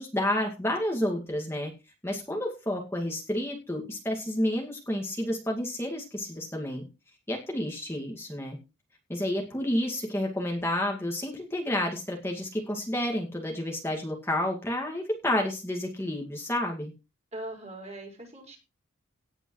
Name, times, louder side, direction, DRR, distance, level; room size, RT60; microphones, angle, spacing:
voice 1, 0.0-1.7 2.0-6.9 7.3-8.6 9.1-16.9, left 1 dB, 10° left, 0 dB, 2.2 m, -30 dB
voice 2, 17.3-18.6, right 1 dB, 30° right, 0 dB, 5.5 m, -40 dB
18.5 x 8.9 x 3.2 m, 0.28 s
head